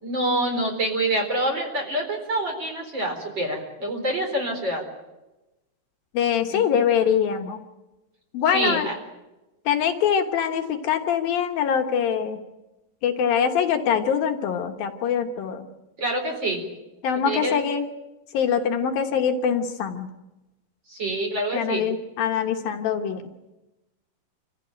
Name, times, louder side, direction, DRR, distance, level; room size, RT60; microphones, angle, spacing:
voice 1, 0.0-4.8 6.5-6.8 8.5-8.9 16.0-16.6 17.2-17.6 20.9-21.8, right 1 dB, 30° right, 3 dB, 4.5 m, -26 dB
voice 2, 6.1-7.6 8.3-8.9 9.7-12.4 13.0-15.7 17.0-17.9 18.3-20.1 21.5-23.2, left 8 dB, 70° left, 4 dB, 2.9 m, -23 dB
27.0 x 15.0 x 9.1 m, 1.0 s
omnidirectional pair, 4.4 m